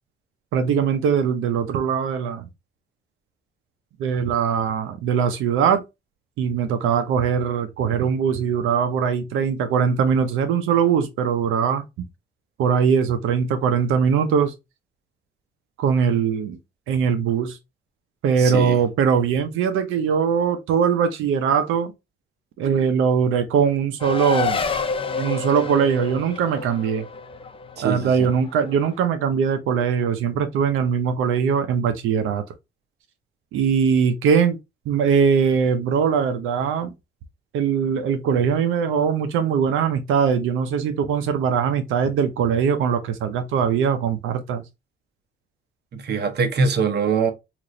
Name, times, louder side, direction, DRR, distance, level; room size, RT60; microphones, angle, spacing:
voice 1, 0.5-2.5 4.0-5.8 6.4-11.8 12.6-14.5 15.8-16.6 16.9-17.6 18.2-21.9 22.6-24.6 25.2-27.1 27.8-32.4 33.5-34.6 34.9-36.9 37.5-44.6, right 7 dB, 85° right, 0.6 m, -21 dB
voice 2, 18.4-18.8 27.8-28.3 45.9-47.3, right 5 dB, 55° right, 1.0 m, -23 dB
Race car auto racing, 24.0-28.9, left 5 dB, 25° left, 0.5 m, -29 dB
3.0 x 2.5 x 3.8 m
cardioid pair, 90°, 20 cm